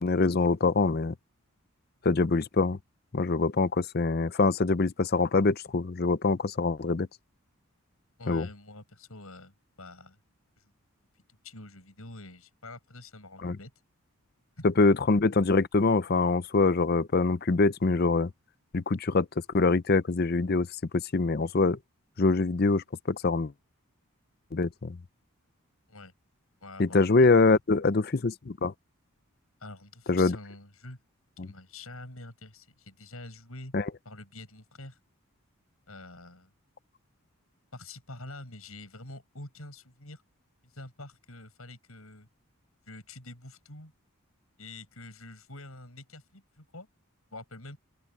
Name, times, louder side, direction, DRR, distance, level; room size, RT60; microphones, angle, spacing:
voice 1, 0.0-1.1 2.0-2.8 3.1-7.1 8.3-8.5 13.4-13.6 14.6-18.3 18.7-19.3 19.5-20.7 20.9-21.8 22.2-23.5 24.5-25.0 26.8-28.7 30.1-30.4 31.4-31.5 33.7-33.8, left 3 dB, 45° left, 0.6 m, -24 dB
voice 2, 8.2-10.2 10.6-10.7 11.4-13.7 14.6-14.7 25.9-26.1 26.6-27.3 29.6-31.0 31.4-33.8 34.0-35.0 35.9-36.5 37.7-40.2 40.6-42.3 42.9-43.9 44.6-46.9 47.3-47.8, left 2 dB, 75° left, 7.4 m, -46 dB
open air
head